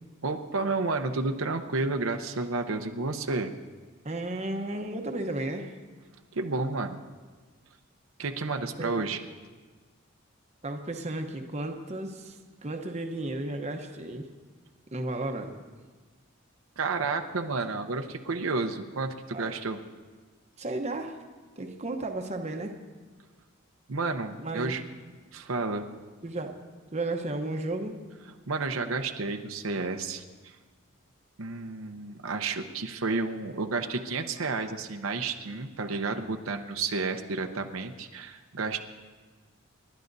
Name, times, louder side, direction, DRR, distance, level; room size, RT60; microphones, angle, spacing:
voice 1, 0.2-3.5 6.3-7.0 8.2-9.2 16.8-19.8 23.9-24.8 25.3-25.9 28.5-30.2 31.4-38.8, right 3 dB, 80° right, 5 dB, 0.8 m, -31 dB
voice 2, 4.0-5.7 8.8-9.1 10.6-14.3 14.9-15.5 19.3-19.6 20.6-21.2 21.6-22.7 24.4-24.8 26.2-26.5 26.9-28.0, right 2 dB, 30° right, 4 dB, 0.9 m, -33 dB
29.0 x 11.5 x 2.7 m, 1.4 s
head